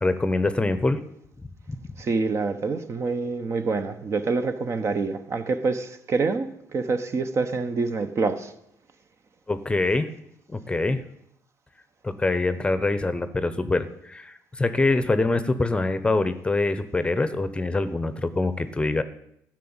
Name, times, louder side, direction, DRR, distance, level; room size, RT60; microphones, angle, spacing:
voice 1, 0.0-1.0 9.5-10.1 10.5-11.0 12.0-19.0, left 2 dB, 15° left, 0.8 m, -24 dB
voice 2, 2.0-8.5, right 4 dB, 40° right, 1.1 m, -26 dB
12.0 x 6.3 x 8.8 m
cardioid pair, 100°, 7 cm